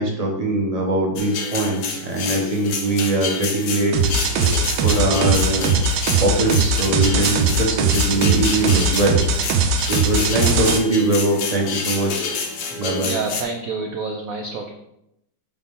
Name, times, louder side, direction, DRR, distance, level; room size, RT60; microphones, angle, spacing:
voice 1, 0.0-3.9 4.3-5.8 6.2-9.2 9.9-12.3 12.8-13.1, right 2 dB, 30° right, -1 dB, 0.8 m, -22 dB
sound 1, 1.2-13.4, left 5 dB, 65° left, 1.3 m, -28 dB
sound 2, 3.9-10.8, right 4 dB, 70° right, 1.2 m, -20 dB
voice 2, 13.0-14.7, right 4 dB, 90° right, 2 dB, 0.7 m, -28 dB
6.8 x 4.0 x 3.6 m, 0.82 s
omnidirectional pair, 2.2 m